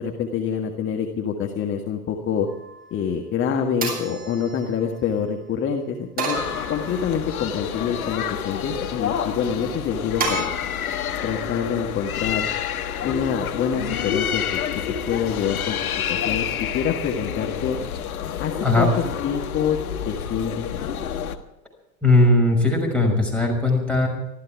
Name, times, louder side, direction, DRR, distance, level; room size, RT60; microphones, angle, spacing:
voice 1, 0.0-2.5 2.9-6.4 6.7-10.5 11.2-12.5 13.0-14.6 15.1-17.8 18.4-18.9 19.2-19.8 20.1-21.0, left 7 dB, 25° left, 3 dB, 1.7 m, -26 dB
sound 1, 2.5-3.0 3.8-5.2 6.2-7.3 7.8-8.5 10.2-10.4, right 3 dB, 20° right, 7.7 m, -31 dB
sound 2, 6.3-21.4, left 8 dB, 65° left, 1.6 m, -28 dB
voice 2, 22.0-24.1, left 2 dB, ahead, -1 dB, 6.0 m, -18 dB
25.0 x 14.0 x 3.6 m, 0.91 s
figure-of-eight pair, 85°, 45 cm